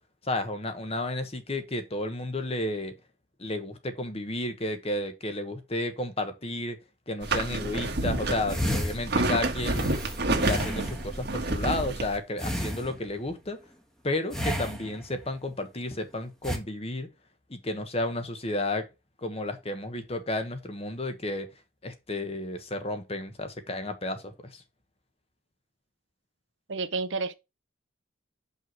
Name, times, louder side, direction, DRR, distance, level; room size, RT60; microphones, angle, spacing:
voice 1, 0.2-2.9 3.4-6.8 7.1-9.9 10.3-13.6 14.0-17.1 17.5-18.9 19.2-21.5 21.8-24.6, left 2 dB, 30° left, 1.1 m, -32 dB
sound 1, 7.2-12.2, right 2 dB, 60° right, 1.3 m, -29 dB
sound 2, 8.5-11.2 12.4-13.3 14.3-15.2 16.4-16.6, equal, 5° left, 1.3 m, -33 dB
voice 2, 26.7-27.3, right 3 dB, 75° right, 0.7 m, -30 dB
5.5 x 4.7 x 6.0 m
head